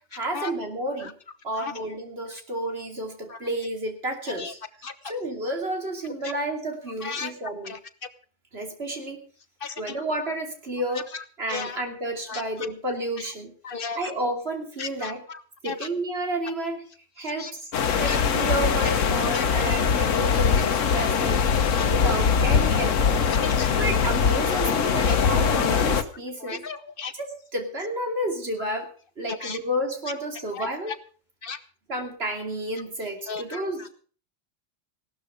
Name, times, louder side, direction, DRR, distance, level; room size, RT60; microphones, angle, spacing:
voice 1, 0.1-1.1 1.4-4.6 5.0-7.8 8.5-9.2 9.8-13.5 13.9-15.2 15.6-16.8 17.2-21.4 21.8-23.2 23.8-26.6 27.1-28.9 29.2-30.9 31.9-33.9, right 1 dB, 50° right, 3 dB, 3.1 m, -31 dB
voice 2, 13.6-14.0 14.8-15.1 15.6-15.7 17.4-17.5 18.0-18.2 19.3-19.7 21.2-21.3 21.8-21.9 23.3-23.7 25.1-25.2 25.6-25.7 26.5-27.1 29.4-29.6 30.6-30.7 31.4-31.6 33.3-33.6, left 5 dB, 45° left, 12 dB, 1.2 m, -34 dB
sound 1, 17.7-26.0, left 6 dB, 75° left, 1.4 m, -22 dB
16.5 x 12.5 x 5.0 m, 0.42 s
omnidirectional pair, 1.3 m